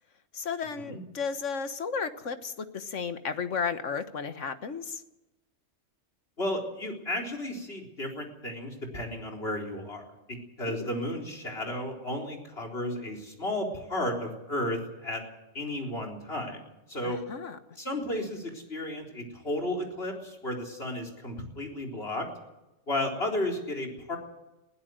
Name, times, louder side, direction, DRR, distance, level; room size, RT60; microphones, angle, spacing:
voice 1, 0.3-5.0 10.7-10.9 17.0-17.6, left 6 dB, 80° left, 10 dB, 1.7 m, -34 dB
voice 2, 6.4-10.0 10.3-15.2 15.5-16.6 16.9-17.2 17.8-22.3 22.9-24.2, left 1 dB, 55° left, 1 dB, 4.2 m, -33 dB
21.5 x 16.0 x 7.7 m, 0.98 s
omnidirectional pair, 1.3 m